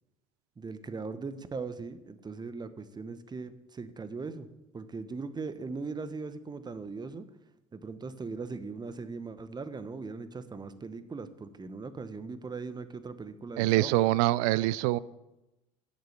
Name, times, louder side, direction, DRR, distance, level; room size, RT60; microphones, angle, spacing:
voice 1, 0.6-4.5 4.7-7.3 7.7-13.9, right 4 dB, 20° right, 12 dB, 1.0 m, -39 dB
voice 2, 13.6-15.0, right 17 dB, 70° right, 19 dB, 0.4 m, -25 dB
8.3 x 6.8 x 8.1 m, 0.96 s
hypercardioid pair, 80°, 19 cm